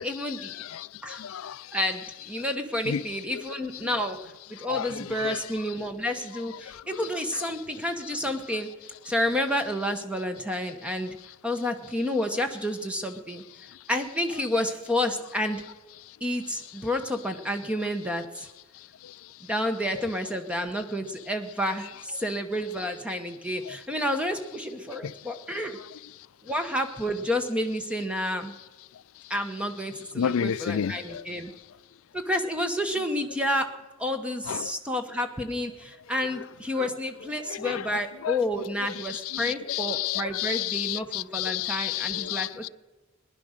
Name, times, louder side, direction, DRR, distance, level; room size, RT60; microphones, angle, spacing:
voice 1, 0.0-0.6 1.0-1.2 1.7-4.2 4.5-8.7 9.0-11.2 11.4-13.4 13.9-15.6 16.2-18.5 19.4-25.8 26.4-28.6 29.3-31.5 32.1-33.7 34.0-42.7, left 1 dB, 5° right, 1.0 m, -30 dB
voice 2, 0.6-1.6 2.9-3.0 3.3-3.4 4.7-5.4 23.7-23.8 25.0-25.1 30.2-31.2 34.5-34.7 37.4-38.4 39.0-42.7, left 9 dB, 85° left, 0.4 m, -31 dB
19.5 x 11.0 x 6.5 m
head